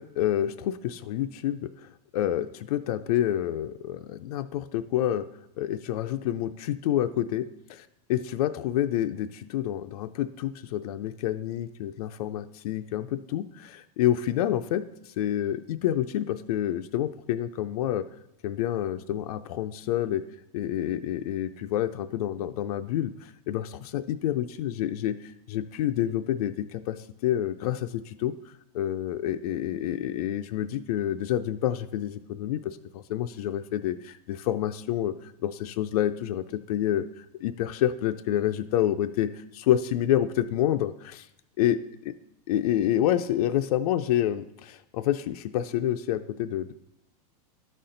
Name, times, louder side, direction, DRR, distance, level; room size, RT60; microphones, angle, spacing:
voice 1, 0.0-5.3 5.6-18.1 18.4-20.2 20.5-41.3 41.6-41.8 42.5-46.7, left 11 dB, 65° left, 9 dB, 0.4 m, -28 dB
12.0 x 4.2 x 3.8 m, 0.85 s
supercardioid pair, 160°, 21 cm